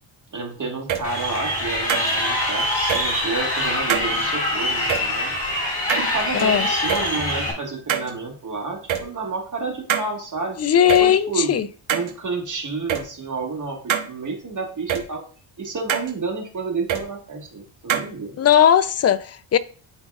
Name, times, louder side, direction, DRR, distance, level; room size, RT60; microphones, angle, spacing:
voice 1, 0.3-5.4 5.9-10.6 10.9-11.6 11.9-15.2 15.6-18.4, right 4 dB, 35° right, 1.8 m, -30 dB
sound 1, 0.9-1.0 1.9-2.1 2.9-3.0 3.9-4.1 4.9-5.0 5.9-6.4 6.9-7.0 7.9-8.1 8.9-9.0 9.9-10.1 10.9-11.0 11.9-12.1 12.9-13.0 13.9-14.1 14.9-15.0 15.9-16.1 16.9-17.0 17.9-18.1, right 9 dB, 70° right, 1.1 m, -23 dB
Crowd, 1.0-7.5, left 1 dB, 15° left, 3.2 m, -24 dB
voice 2, 10.6-11.7 18.4-19.6, left 9 dB, 35° left, 0.4 m, -17 dB
11.5 x 3.9 x 2.4 m
cardioid pair, 100°, 49 cm